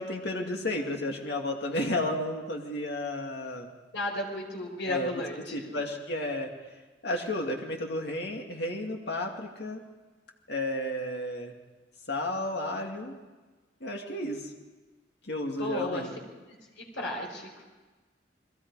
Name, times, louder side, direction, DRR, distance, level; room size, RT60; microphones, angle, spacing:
voice 1, 0.0-3.7 4.9-5.2 5.5-6.5 7.0-9.8 10.5-11.5 12.1-13.1 13.8-14.4 15.3-16.1, left 1 dB, 60° left, 1 dB, 2.5 m, -32 dB
voice 2, 3.9-5.7 15.6-16.1 16.8-17.6, left 2 dB, 75° left, 1 dB, 5.1 m, -34 dB
29.5 x 21.0 x 4.9 m, 1.3 s
head